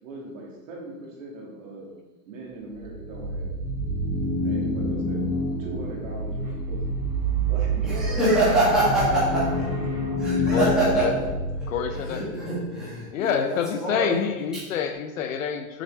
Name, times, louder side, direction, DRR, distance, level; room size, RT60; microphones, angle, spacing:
voice 1, 0.0-1.9 2.3-3.6 4.4-5.3 5.6-6.8 7.5-8.4 10.5-11.3 12.0-12.7, right 2 dB, 55° right, -2 dB, 2.2 m, -39 dB
sound 1, 2.8-12.1, right 1 dB, 25° right, 1.8 m, -28 dB
voice 2, 7.8-9.5 10.2-11.0 11.6-11.8 12.1-14.2, right 1 dB, ahead, -10 dB, 2.0 m, -24 dB
Bass guitar, 8.7-14.9, left 3 dB, 80° left, 2.6 m, -39 dB
voice 3, 10.5-11.1 11.7-12.2 13.1-15.8, left 8 dB, 60° left, 7 dB, 0.7 m, -27 dB
7.9 x 6.4 x 3.2 m, 1.1 s
supercardioid pair, 170°, 46 cm